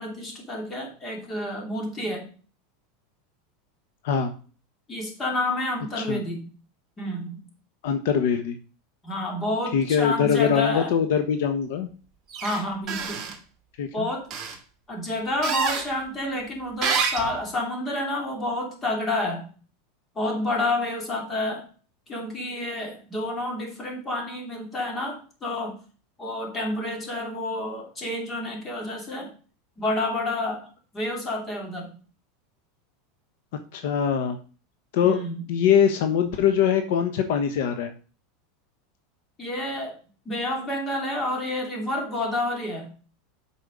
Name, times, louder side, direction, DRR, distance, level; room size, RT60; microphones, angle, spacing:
voice 1, 0.0-2.3 4.9-6.4 7.0-7.4 9.0-10.9 12.4-13.2 13.9-14.3 14.9-19.5 20.1-21.6 22.1-25.8 26.2-29.3 29.8-30.7 30.9-31.9 35.0-35.4 39.4-40.0 40.2-42.9, left 1 dB, 20° left, 1 dB, 2.9 m, -29 dB
voice 2, 7.8-8.6 9.7-11.9 13.8-14.1 33.7-34.4 34.9-35.2 35.5-37.9, left 8 dB, 70° left, 8 dB, 1.1 m, -22 dB
sound 1, 12.3-12.6 12.9-13.3 14.3-14.5 15.4-15.8 16.8-17.3, right 6 dB, 30° right, 2.4 m, -27 dB
8.4 x 5.5 x 5.2 m, 0.38 s
supercardioid pair, 145°, 0 cm